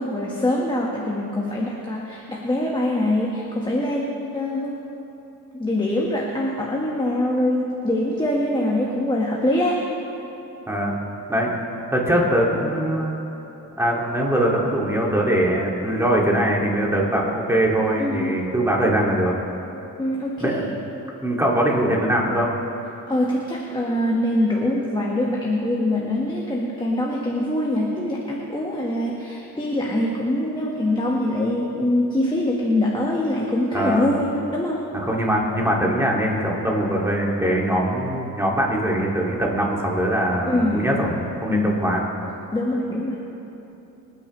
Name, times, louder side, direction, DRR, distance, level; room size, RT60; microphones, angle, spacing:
voice 1, 0.0-4.8 5.5-9.9 18.0-18.5 20.0-20.6 23.1-34.9 40.5-40.9 41.5-41.8 42.5-43.3, left 1 dB, 15° left, -3 dB, 1.6 m, -24 dB
voice 2, 10.7-11.0 11.3-11.5 11.9-13.2 13.8-19.3 20.4-20.7 21.2-22.5 33.7-34.1 34.9-42.0, right 1 dB, 5° right, -3 dB, 2.5 m, -22 dB
25.5 x 9.4 x 3.3 m, 3.0 s
cardioid pair, 100°, 35 cm